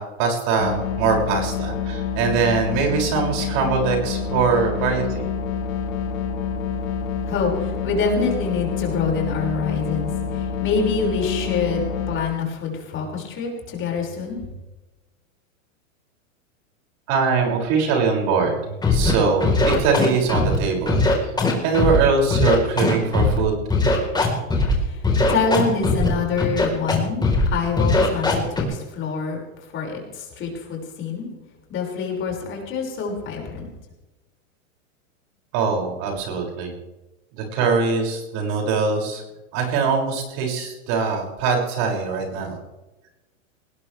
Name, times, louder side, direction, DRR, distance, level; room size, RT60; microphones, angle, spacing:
voice 1, 0.0-5.3 17.1-21.0 21.2-21.3 21.6-23.6 35.5-36.7 37.4-39.2 39.5-42.6, right 5 dB, 50° right, 1 dB, 6.7 m, -22 dB
sound 1, 0.6-12.2, left 6 dB, 50° left, 4.0 m, -27 dB
voice 2, 7.3-14.4 24.7-25.0 25.3-29.4 29.7-31.3 31.7-33.6, left 5 dB, 30° left, -1 dB, 6.0 m, -26 dB
Scratching (performance technique), 18.8-19.1 19.4-20.6 20.9-22.0 22.3-23.4 23.7-24.7 25.0-26.1 26.4-27.0 27.2-27.5 27.8-28.6, left 3 dB, 10° left, 4.3 m, -19 dB
20.5 x 19.5 x 3.5 m, 1.0 s
hypercardioid pair, 130°, 40 cm